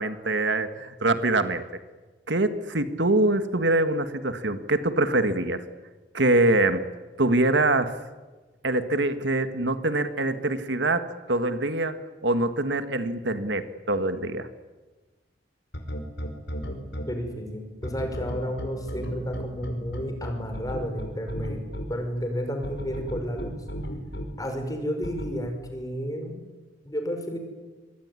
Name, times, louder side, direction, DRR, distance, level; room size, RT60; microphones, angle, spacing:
voice 1, 0.0-1.6 2.3-5.6 6.1-6.9 7.2-8.0 8.6-12.0 12.2-14.5, right 2 dB, 75° right, 10 dB, 1.8 m, -24 dB
sound 1, 15.7-17.0 17.8-21.8 22.6-24.2 25.0-25.3, equal, 65° left, 5.2 m, -33 dB
voice 2, 17.1-21.6 21.9-23.5 24.4-26.4 26.8-27.4, equal, 20° left, 5 dB, 5.4 m, -31 dB
25.5 x 23.5 x 9.8 m, 1.3 s
head